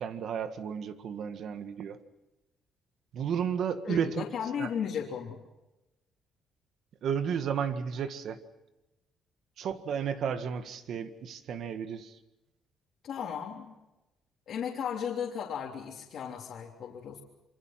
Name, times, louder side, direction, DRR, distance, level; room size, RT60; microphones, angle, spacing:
voice 1, 0.0-2.0 3.1-4.2 4.6-4.7 7.0-8.4 9.6-12.2, right 7 dB, 60° right, 10 dB, 1.8 m, -33 dB
voice 2, 3.9-5.4 13.0-13.8 14.5-17.2, left 7 dB, 55° left, -2 dB, 3.4 m, -35 dB
27.0 x 24.5 x 5.9 m, 0.98 s
cardioid pair, 135°, 0 cm